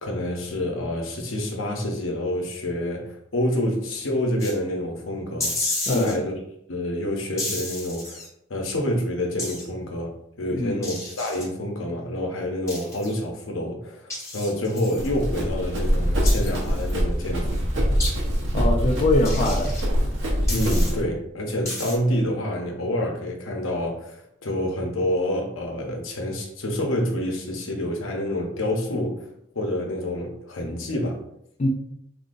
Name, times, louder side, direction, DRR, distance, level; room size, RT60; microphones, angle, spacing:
voice 1, 0.0-5.6 5.9-6.3 6.7-10.1 10.4-17.6 20.5-29.3 29.5-31.2, left 1 dB, 90° left, 2 dB, 0.8 m, -27 dB
sound 1, 4.4-4.5 5.4-6.1 7.4-8.3 9.4-9.7 10.8-11.5 12.7-13.1 14.1-15.1 16.2-16.9 18.0-18.1 19.2-19.9 20.5-20.9 21.7-22.0, left 2 dB, 15° left, 1.1 m, -31 dB
voice 2, 5.9-6.2 10.5-10.9 18.5-19.8 31.6-31.7, left 2 dB, 35° left, 0 dB, 0.4 m, -23 dB
Run, 15.0-21.0, equal, 70° right, 1.0 m, -23 dB
3.7 x 2.8 x 2.6 m, 0.77 s
head